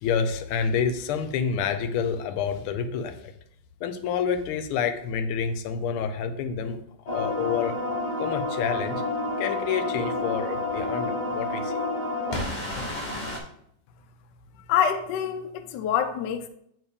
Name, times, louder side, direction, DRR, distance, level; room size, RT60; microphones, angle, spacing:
voice 1, 0.0-3.3 3.8-6.8 7.1-7.7 8.2-9.0 9.4-11.9, left 6 dB, 90° left, 1.5 m, -28 dB
sound 1, 7.1-13.4, left 2 dB, 40° left, 0.6 m, -29 dB
voice 2, 14.7-16.5, left 8 dB, 75° left, 1.1 m, -26 dB
9.1 x 3.3 x 3.5 m
omnidirectional pair, 2.3 m